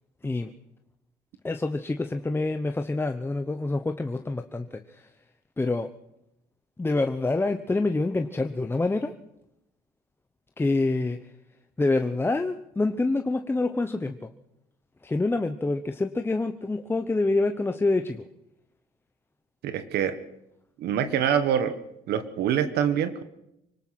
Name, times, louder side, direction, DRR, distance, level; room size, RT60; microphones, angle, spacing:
voice 1, 1.4-5.0 5.6-5.9 6.8-9.1 10.6-11.2 11.8-14.1 15.0-18.2, left 2 dB, 15° left, 6 dB, 0.9 m, -26 dB
voice 2, 19.6-20.2 20.8-21.8 22.1-23.2, right 9 dB, 75° right, 11 dB, 1.5 m, -25 dB
25.0 x 18.5 x 6.0 m, 0.84 s
cardioid pair, 110°, 17 cm